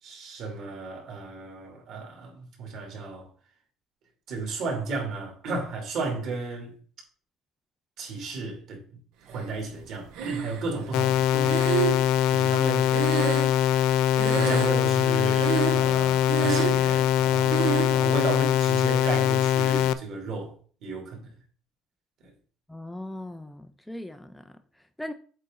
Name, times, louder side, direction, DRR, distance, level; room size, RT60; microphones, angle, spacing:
voice 1, 0.0-3.3 4.3-6.7 8.0-8.8 9.3-12.9 13.6-13.8 14.3-20.5 20.8-21.3 22.2-22.3, right 3 dB, 55° right, 2.8 m, -34 dB
Breathing, 10.1-10.9 11.4-13.9 14.2-15.0 15.4-16.0 16.2-16.9 17.5-18.0, right 8 dB, 80° right, 1.0 m, -29 dB
sound 1, 10.9-19.9, left 10 dB, 80° left, 0.4 m, -22 dB
voice 2, 22.7-25.1, left 1 dB, 5° left, 0.3 m, -39 dB
7.9 x 4.0 x 3.8 m
cardioid pair, 155°, 0 cm